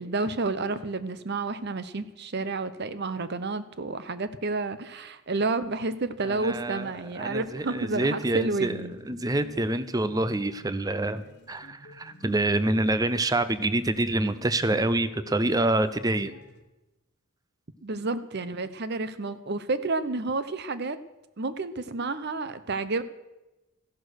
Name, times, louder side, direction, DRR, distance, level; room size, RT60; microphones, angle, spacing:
voice 1, 0.0-9.0 17.8-21.0 21.4-23.0, right 3 dB, 50° right, 13 dB, 0.8 m, -30 dB
voice 2, 6.2-16.3, right 2 dB, 15° right, 13 dB, 0.6 m, -27 dB
sound 1, 6.3-16.6, left 1 dB, 55° left, 1.5 m, -50 dB
15.0 x 11.0 x 6.5 m, 1.0 s
head